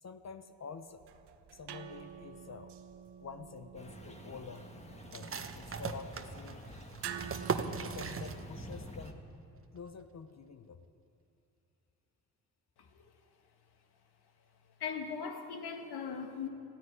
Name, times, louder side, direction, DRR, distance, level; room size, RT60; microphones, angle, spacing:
voice 1, 0.0-1.0 1.5-2.8 3.2-6.6 7.9-9.2 9.7-10.8, left 5 dB, 40° left, 10 dB, 0.8 m, -48 dB
sound 1, 0.9-8.9, right 9 dB, 75° right, 1.0 m, -49 dB
sound 2, 3.7-9.1, left 1 dB, 15° left, 2.0 m, -49 dB
sound 3, 5.1-8.8 9.0-9.1 9.6-10.0, right 5 dB, 30° right, 1.0 m, -39 dB
voice 2, 14.8-16.5, left 6 dB, 65° left, 5 dB, 1.8 m, -39 dB
15.0 x 9.5 x 9.9 m, 2.7 s
supercardioid pair, 60°, 42 cm